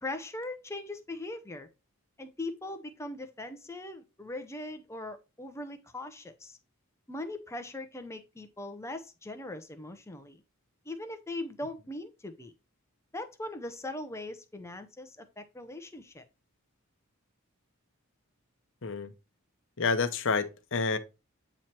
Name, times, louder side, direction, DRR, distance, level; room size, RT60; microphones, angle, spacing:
voice 1, 0.0-1.7 2.2-6.6 7.1-10.4 10.9-12.5 13.1-16.3, left 2 dB, 10° left, 0.6 m, -40 dB
voice 2, 18.8-19.1 19.8-21.0, left 4 dB, 60° left, 0.8 m, -29 dB
8.8 x 3.1 x 4.4 m
head